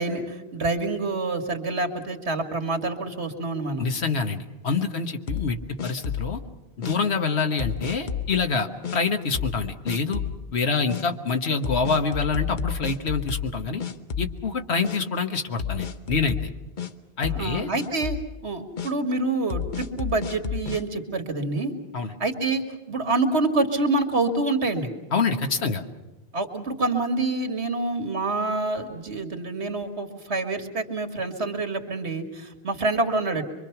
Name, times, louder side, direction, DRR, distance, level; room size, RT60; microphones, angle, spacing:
voice 1, 0.0-3.8 17.3-18.2 18.4-21.7 22.2-24.9 26.3-33.4, right 2 dB, 75° right, 6 dB, 2.3 m, -27 dB
voice 2, 3.8-6.4 6.8-10.2 10.5-13.8 14.2-16.4 17.2-17.7 21.9-22.1 25.1-25.8, left 4 dB, 75° left, 6 dB, 1.6 m, -26 dB
sound 1, 5.3-6.4 6.8-7.0 7.6-8.3 8.8-9.0 9.3-9.6 9.9-10.4 10.9-11.0 11.6-13.5 13.8-14.5 14.8-15.0 15.6-16.9 17.2-17.5 17.8-18.3 18.8-18.9 19.5-20.8, left 7 dB, 50° left, 1.0 m, -31 dB
25.0 x 24.0 x 5.9 m, 1.1 s
omnidirectional pair, 1.1 m